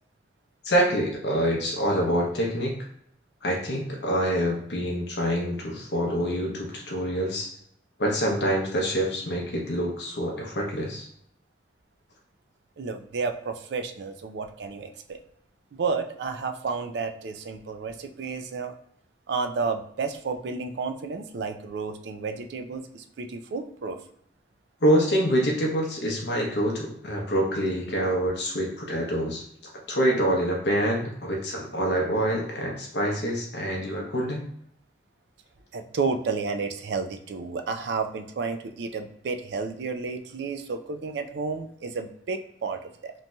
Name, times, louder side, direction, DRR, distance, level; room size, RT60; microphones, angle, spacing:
voice 1, 0.6-2.8 3.4-7.5 8.0-11.1 24.8-29.4 29.9-34.5, equal, 70° left, -1 dB, 0.6 m, -26 dB
voice 2, 12.8-15.2 15.7-18.7 19.3-24.0 35.7-43.1, right 4 dB, 70° right, 7 dB, 0.4 m, -31 dB
3.0 x 2.6 x 2.2 m, 0.69 s
head